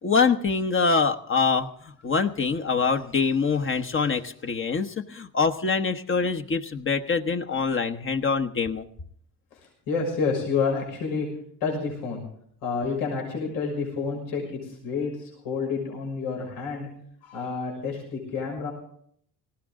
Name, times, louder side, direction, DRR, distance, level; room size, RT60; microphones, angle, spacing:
voice 1, 0.0-1.7 2.0-8.8, left 5 dB, 35° left, 7 dB, 1.2 m, -24 dB
voice 2, 9.9-11.3 11.6-12.2 12.6-16.9 17.2-18.7, left 5 dB, 90° left, 0 dB, 6.2 m, -29 dB
19.0 x 17.0 x 3.8 m, 0.64 s
cardioid pair, 110°, 36 cm